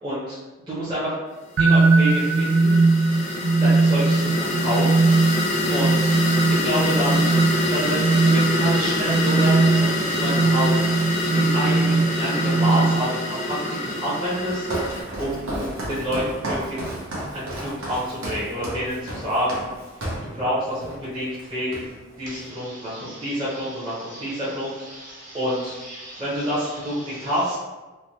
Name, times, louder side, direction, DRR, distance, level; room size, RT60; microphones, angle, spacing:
voice 1, 0.0-0.4 0.7-1.1 1.6-2.7 3.6-5.1 5.7-6.2 6.5-7.3 7.7-10.9 11.3-13.6 13.8-16.9 17.3-19.6 20.3-21.9 22.2-25.8 26.2-27.5, equal, 20° right, -12 dB, 0.7 m, -28 dB
sound 1, 1.6-15.0, left 1 dB, 35° left, 0.4 m, -26 dB
sound 2, 1.6-13.3, right 3 dB, 60° right, 0.3 m, -20 dB
Walk footsteps, 14.4-20.3 20.8-21.1 21.3-22.2, right 1 dB, 80° right, 0.8 m, -32 dB
voice 2, 22.3-27.5, right 1 dB, 40° right, -7 dB, 1.0 m, -43 dB
3.2 x 2.1 x 2.8 m, 1.2 s
head